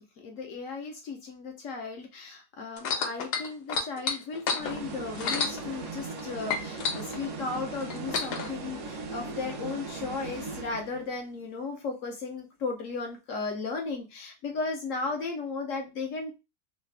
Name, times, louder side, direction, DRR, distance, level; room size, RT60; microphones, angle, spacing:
voice 1, 0.0-16.4, left 4 dB, 65° left, 3 dB, 0.8 m, -35 dB
sound 1, 2.8-6.2 6.5-8.5 9.3-9.4, left 5 dB, 85° left, 1.2 m, -31 dB
sound 2, 4.6-11.2, right 4 dB, 60° right, 0.9 m, -38 dB
3.2 x 2.0 x 3.2 m, 0.28 s
omnidirectional pair, 1.7 m